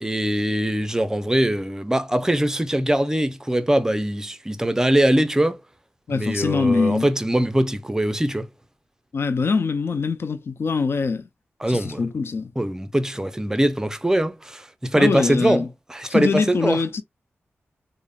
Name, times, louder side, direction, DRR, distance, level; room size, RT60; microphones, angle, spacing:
voice 1, 0.0-5.6 6.1-8.5 11.6-12.0 12.6-16.8, right 1 dB, 10° right, 0.5 m, -22 dB
voice 2, 6.1-7.1 9.1-11.3 11.7-12.5 14.9-15.7 16.1-17.0, left 4 dB, 60° left, 0.5 m, -23 dB
3.5 x 2.0 x 2.2 m
cardioid pair, 65°, 5 cm